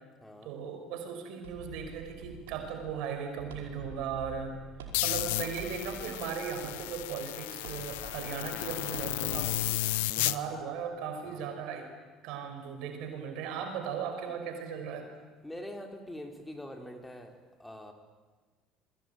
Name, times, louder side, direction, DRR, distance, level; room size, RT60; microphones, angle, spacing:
voice 1, 0.4-4.6 5.0-9.7 10.1-11.9 12.2-15.1, right 7 dB, 65° right, 5 dB, 5.6 m, -37 dB
sound 1, 1.4-9.7, right 4 dB, 85° right, 5.0 m, -47 dB
sound 2, 4.9-10.4, left 18 dB, 75° left, 0.9 m, -33 dB
voice 2, 15.4-17.9, left 1 dB, 10° left, 4 dB, 4.3 m, -44 dB
27.5 x 23.0 x 9.3 m, 1.3 s
hypercardioid pair, 70°, 0 cm